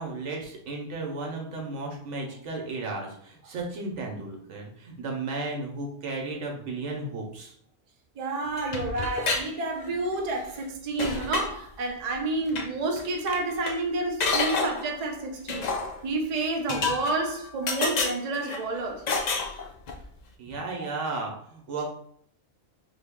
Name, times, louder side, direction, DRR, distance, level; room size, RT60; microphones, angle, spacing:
voice 1, 0.0-7.5 20.4-22.0, right 3 dB, 80° right, 1.2 m, -34 dB
voice 2, 8.2-15.7 16.0-19.1 20.8-20.9, right 2 dB, 45° right, 0.5 m, -29 dB
sound 1, 8.6-9.5 9.8-10.3 10.6-10.7 11.0-11.5 12.5-12.7 13.0-13.1 13.3-13.8 14.2-14.9 15.5-16.0 16.7-17.4 17.7-18.6 19.1-20.0, left 4 dB, 65° left, 0.4 m, -29 dB
3.7 x 2.1 x 3.5 m
omnidirectional pair, 1.2 m